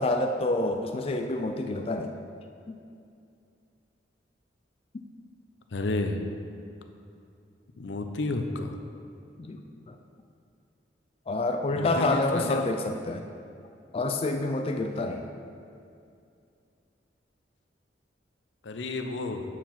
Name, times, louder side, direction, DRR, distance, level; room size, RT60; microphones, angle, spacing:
voice 1, 0.0-2.1 9.4-9.9 11.3-13.3 13.9-15.3, left 2 dB, 30° left, 4 dB, 0.3 m, -28 dB
voice 2, 5.7-6.2 7.8-8.7 11.7-12.7 18.6-19.4, left 2 dB, 80° left, 6 dB, 0.6 m, -31 dB
7.4 x 4.6 x 5.7 m, 2.4 s
head